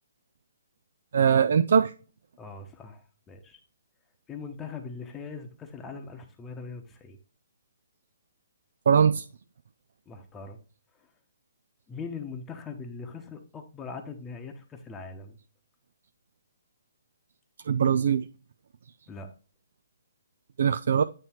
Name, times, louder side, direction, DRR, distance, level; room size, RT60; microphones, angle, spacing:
voice 1, 1.1-1.9 8.9-9.3 17.7-18.2 20.6-21.0, right 7 dB, 65° right, 9 dB, 0.4 m, -21 dB
voice 2, 2.4-3.6 4.3-7.2 10.1-10.6 10.9-11.1 11.9-15.4 19.1-19.3, left 4 dB, 15° left, 5 dB, 0.9 m, -41 dB
8.8 x 3.1 x 4.4 m, 0.36 s
hypercardioid pair, 140°, 0 cm